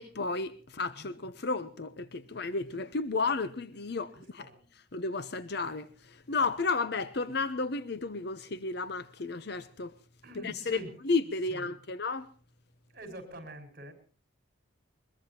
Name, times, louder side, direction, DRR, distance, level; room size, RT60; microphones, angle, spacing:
voice 1, 0.0-4.5 4.9-9.9 10.4-12.3, left 3 dB, 55° left, 0.8 m, -33 dB
voice 2, 4.1-4.6 10.2-10.9 11.5-11.7 12.9-13.9, right 1 dB, 45° right, 5.1 m, -45 dB
22.5 x 22.0 x 2.9 m
head